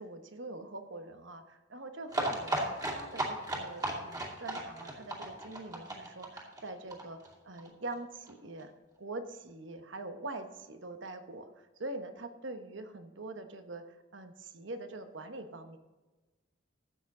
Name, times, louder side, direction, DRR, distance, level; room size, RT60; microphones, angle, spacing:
voice 1, 0.0-7.2 7.4-8.7 9.0-15.8, right 2 dB, 70° right, 8 dB, 1.1 m, -44 dB
sound 1, 2.1-7.7 7.9-8.0 8.3-8.4 8.6-8.7, right 1 dB, 20° right, 2.3 m, -35 dB
13.5 x 8.4 x 3.8 m, 1.2 s
head